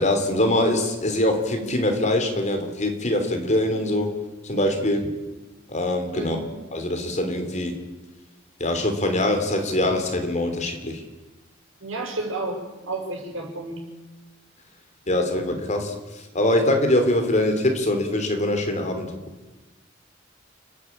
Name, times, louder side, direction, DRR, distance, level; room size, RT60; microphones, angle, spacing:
voice 1, 0.0-4.1 4.4-5.1 5.7-6.4 6.7-7.7 8.6-11.0 15.1-19.2, left 1 dB, 35° left, 5 dB, 3.2 m, -23 dB
voice 2, 11.8-13.8, right 2 dB, 90° right, 1 dB, 6.2 m, -31 dB
29.5 x 10.0 x 8.7 m, 1.2 s
head